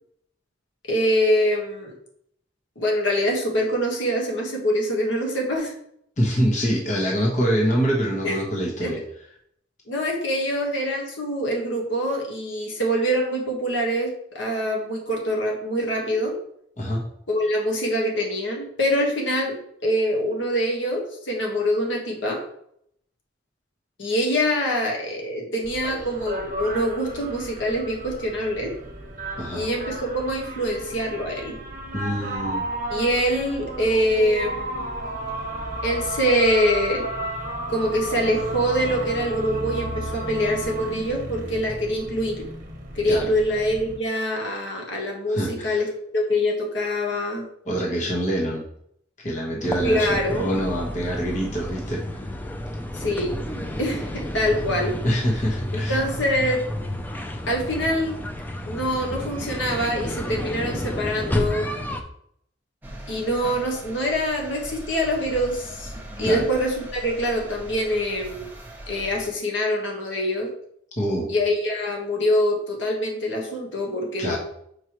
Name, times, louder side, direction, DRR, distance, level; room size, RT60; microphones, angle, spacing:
voice 1, 0.9-1.9 2.8-5.8 8.2-8.4 8.8-8.9 9.9-16.3 17.3-19.5 19.8-22.4 24.0-28.7 29.5-31.6 32.9-34.9 35.8-37.1 37.7-42.5 42.9-45.9 46.1-47.5 49.8-50.5 52.9-53.3 53.8-55.0 55.7-56.6 57.5-58.2 58.6-61.7 63.1-65.9 66.2-68.5 68.9-70.5 71.3-74.4, equal, 70° left, 0 dB, 1.4 m, -24 dB
voice 2, 6.2-9.0 16.8-17.0 29.3-29.6 31.9-32.7 43.1-43.3 45.3-45.8 47.7-48.6 49.2-52.2 55.0-56.0 66.2-66.4 71.0-71.3 74.2-74.4, equal, 40° left, -3 dB, 1.2 m, -25 dB
sound 1, 25.6-44.0, right 1 dB, 45° right, 1.3 m, -33 dB
sound 2, 49.6-62.0, left 1 dB, 10° left, 0.4 m, -31 dB
sound 3, 62.8-69.3, right 1 dB, 10° right, 0.8 m, -40 dB
6.5 x 4.8 x 3.0 m, 0.70 s
head